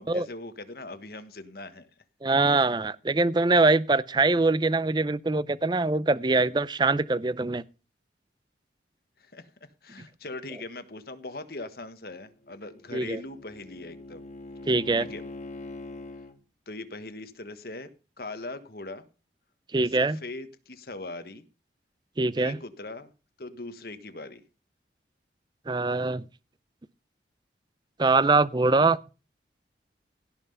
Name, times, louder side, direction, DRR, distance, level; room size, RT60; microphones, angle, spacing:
voice 1, 0.0-1.9 9.2-9.5 9.8-14.2 15.0-15.2 16.7-17.9 18.2-19.1 19.8-21.4 22.4-23.1 23.4-24.4, left 2 dB, 55° left, 1.4 m, -40 dB
voice 2, 2.2-7.6 12.9-13.2 14.7-15.1 19.7-20.2 22.2-22.6 25.7-26.2 28.0-29.0, right 3 dB, 25° right, 0.5 m, -23 dB
Bowed string instrument, 12.3-16.3, left 2 dB, 40° left, 1.5 m, -43 dB
16.5 x 5.8 x 5.5 m
head